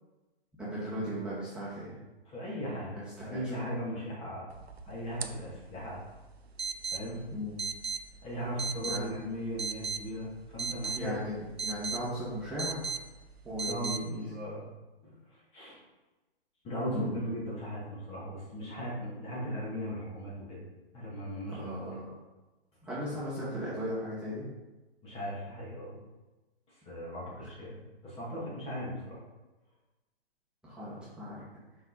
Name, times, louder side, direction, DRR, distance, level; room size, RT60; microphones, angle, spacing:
voice 1, 0.6-2.0 2.9-3.7 7.3-7.6 8.9-9.2 10.9-12.9 13.4-14.3 16.9-17.1 21.5-22.1 22.8-24.5 30.6-31.4, equal, 5° right, -11 dB, 1.9 m, -37 dB
voice 2, 2.3-2.9 3.2-4.5 4.9-6.0 6.9-7.2 8.2-11.1 13.6-14.7 15.0-15.2 15.5-15.8 16.6-20.6 20.9-21.7 25.0-26.0 26.9-27.8 28.0-29.2, equal, 20° left, -6 dB, 2.2 m, -37 dB
sound 1, 4.5-14.0, right 5 dB, 85° right, 0.7 m, -39 dB
6.0 x 5.2 x 4.1 m, 1.1 s
figure-of-eight pair, 125°, 31 cm